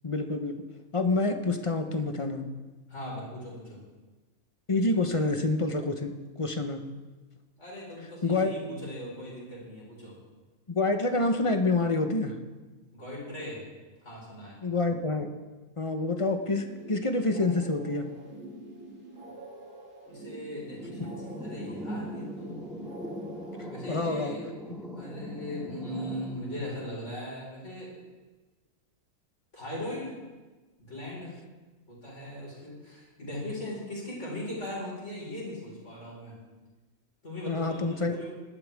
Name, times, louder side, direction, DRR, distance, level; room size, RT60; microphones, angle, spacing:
voice 1, 0.0-0.5 0.9-2.5 4.7-6.8 8.2-8.5 10.7-12.4 14.6-15.3 15.8-18.1 23.9-24.3 37.5-38.2, left 2 dB, 25° left, 6 dB, 0.8 m, -27 dB
voice 2, 2.9-3.8 7.6-10.1 12.9-13.6 14.0-14.6 19.3-19.4 20.1-22.8 23.7-24.6 24.9-27.9 29.5-30.2 30.8-31.3 31.9-36.4 37.2-38.3, left 1 dB, 55° left, -5 dB, 5.3 m, -39 dB
sound 1, 16.4-23.7, right 1 dB, 60° right, 2.8 m, -46 dB
sound 2, 20.7-26.8, equal, ahead, 3.0 m, -40 dB
21.0 x 12.0 x 3.6 m, 1.2 s
omnidirectional pair, 1.5 m